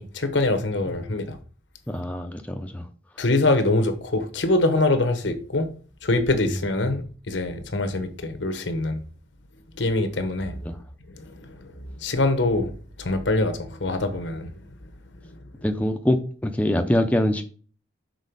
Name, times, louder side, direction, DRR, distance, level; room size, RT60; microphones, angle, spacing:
voice 1, 0.0-1.4 3.2-5.7 6.0-9.0 9.8-10.6 11.2-11.3 12.0-12.7 13.0-14.5, left 2 dB, 80° left, 1.1 m, -24 dB
voice 2, 1.9-2.9 6.5-6.6 10.6-10.8 15.6-17.4, left 1 dB, 10° left, 0.5 m, -24 dB
6.3 x 4.1 x 5.3 m
head